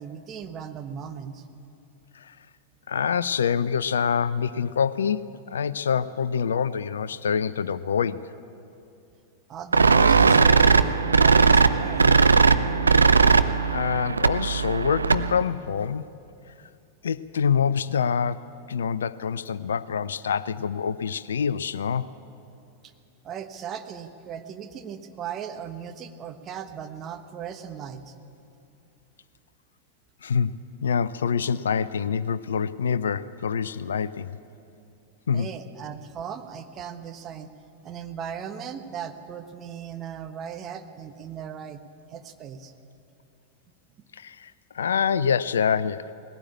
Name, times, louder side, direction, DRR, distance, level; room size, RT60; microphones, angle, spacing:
voice 1, 0.0-1.4 9.5-12.2 22.8-22.9 23.2-28.1 35.3-37.5 37.8-41.8 42.1-42.7, right 8 dB, 30° right, 7 dB, 1.3 m, -37 dB
voice 2, 2.9-8.3 13.6-16.1 17.0-22.1 30.2-30.5 30.8-34.4 35.3-35.5 44.1-46.1, left 7 dB, 65° left, 18 dB, 0.5 m, -26 dB
sound 1, 9.7-15.4, right 4 dB, 75° right, 0.5 m, -18 dB
19.5 x 17.0 x 8.5 m, 2.6 s
figure-of-eight pair, 90°, 0 cm